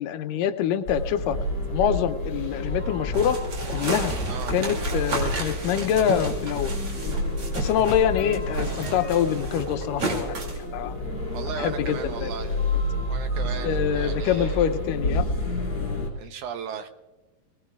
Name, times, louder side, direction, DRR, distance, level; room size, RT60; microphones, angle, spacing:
voice 1, 0.0-1.4 1.7-3.4 3.7-4.1 4.5-6.7 7.6-11.0 11.6-12.3 13.6-15.3, left 9 dB, 80° left, 9 dB, 2.3 m, -25 dB
sound 1, 0.9-16.1, left 1 dB, 30° left, 3.8 m, -30 dB
sound 2, 3.1-8.0 8.3-10.6, right 3 dB, 45° right, 3.4 m, -32 dB
sound 3, 4.2-9.4, left 5 dB, 55° left, 1.8 m, -46 dB
voice 2, 11.3-12.6 13.1-14.7 16.2-16.9, right 7 dB, 75° right, 7 dB, 2.1 m, -36 dB
22.5 x 19.0 x 2.4 m, 1.1 s
omnidirectional pair, 3.9 m